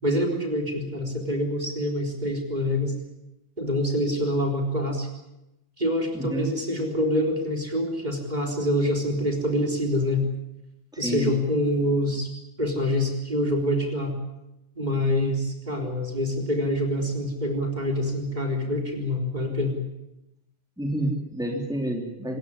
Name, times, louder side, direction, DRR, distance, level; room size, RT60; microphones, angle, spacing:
voice 1, 0.0-2.9 3.6-5.1 5.8-10.3 11.0-12.3 12.6-14.2 14.8-19.8, left 1 dB, 35° right, 3 dB, 4.1 m, -26 dB
voice 2, 6.1-6.5 10.9-11.3 20.8-22.4, right 1 dB, 5° right, 1 dB, 3.4 m, -29 dB
25.5 x 15.5 x 10.0 m, 0.92 s
omnidirectional pair, 1.2 m